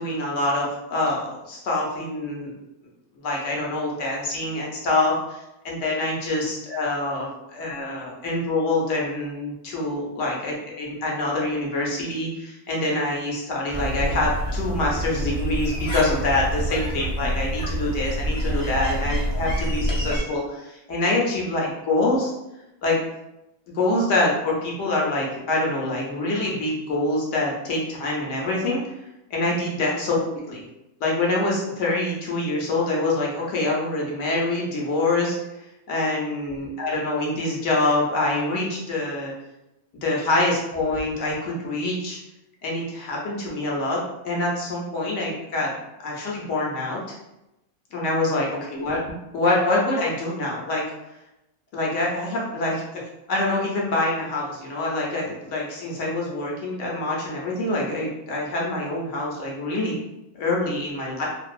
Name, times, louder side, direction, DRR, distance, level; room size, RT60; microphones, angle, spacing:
voice 1, 0.0-2.5 3.2-22.3 22.8-23.0 23.7-28.8 29.3-30.2 30.5-30.6 31.0-35.4 35.9-39.3 40.0-42.2 42.6-45.7 46.0-47.2 47.9-49.0 49.3-50.8 51.7-53.0 53.3-60.0 60.3-61.3, left 2 dB, 65° left, -3 dB, 0.9 m, -25 dB
sound 1, 13.7-20.2, equal, 45° left, 0.4 m, -27 dB
2.6 x 2.2 x 2.4 m, 0.91 s
omnidirectional pair, 1.5 m